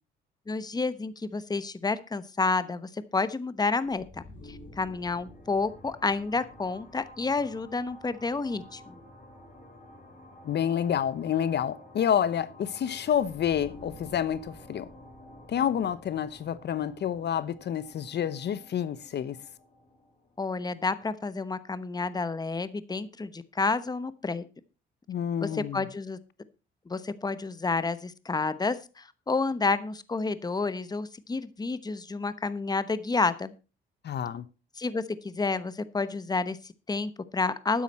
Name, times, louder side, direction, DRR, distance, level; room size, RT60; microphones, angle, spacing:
voice 1, 0.5-8.9 20.4-24.4 25.4-26.2 26.9-33.5 34.8-37.8, left 3 dB, 20° left, 1.0 m, -30 dB
sound 1, 3.8-21.5, left 1 dB, 40° left, 7.0 m, -51 dB
voice 2, 10.4-14.9 15.5-19.4 25.1-25.9 34.0-34.5, left 9 dB, 60° left, 0.9 m, -29 dB
12.0 x 9.8 x 4.3 m
cardioid pair, 90°, 20 cm